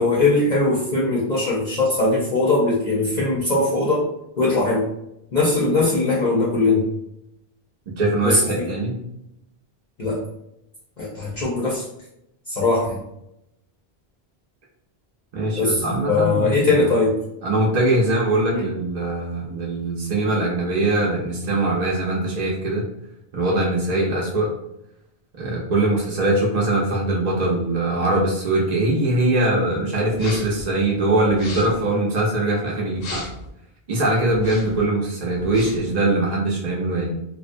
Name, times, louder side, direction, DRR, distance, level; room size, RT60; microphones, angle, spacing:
voice 1, 0.0-4.1 4.4-4.8 5.3-6.8 8.2-8.7 10.0-10.2 11.0-11.8 12.5-13.0 15.6-17.1 18.5-18.7, left 2 dB, 50° left, -6 dB, 0.6 m, -20 dB
voice 2, 8.0-9.0 15.3-16.8 17.4-22.8 23.3-24.5 25.3-33.2 33.9-37.1, right 2 dB, 50° right, -3 dB, 0.5 m, -22 dB
sound 1, 30.1-30.6 31.3-31.9 32.9-33.5 34.3-34.8 35.4-35.9, left 2 dB, 85° left, 0.8 m, -35 dB
2.5 x 2.0 x 2.5 m, 0.81 s
omnidirectional pair, 1.1 m